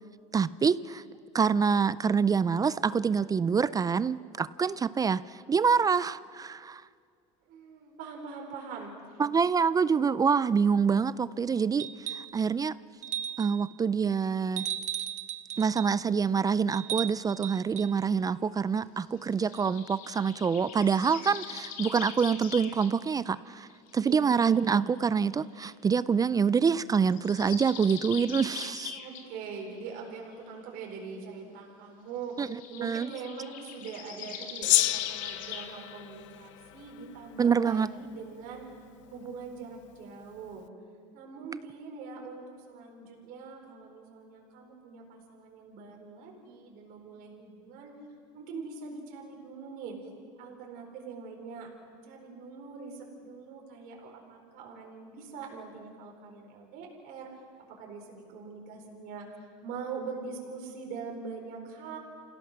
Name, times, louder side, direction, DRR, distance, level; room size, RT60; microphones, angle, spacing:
voice 1, 0.3-1.0 1.3-6.8 9.2-12.7 13.4-14.7 15.6-23.7 23.9-29.0 32.4-33.1 37.4-37.9, right 6 dB, 25° right, 18 dB, 0.4 m, -26 dB
voice 2, 7.5-9.2 24.0-24.4 28.9-32.4 32.7-38.7 39.1-40.7 41.1-48.0 48.3-50.0 50.4-51.7 52.0-57.3 57.7-62.0, right 5 dB, 65° right, 1 dB, 4.4 m, -43 dB
sound 1, 11.8-12.4 13.0-13.6 14.6-15.9 16.7-17.9 19.6-19.7, right 10 dB, 50° right, 1.0 m, -36 dB
sound 2, 19.5-22.9 23.5-24.6 25.6-25.7 27.0-29.3 32.5-35.7, left 8 dB, 60° left, 2.2 m, -42 dB
Gong, 34.6-37.3, left 17 dB, 90° left, 0.6 m, -30 dB
27.5 x 17.0 x 6.3 m, 2.2 s
supercardioid pair, 95°, 16 cm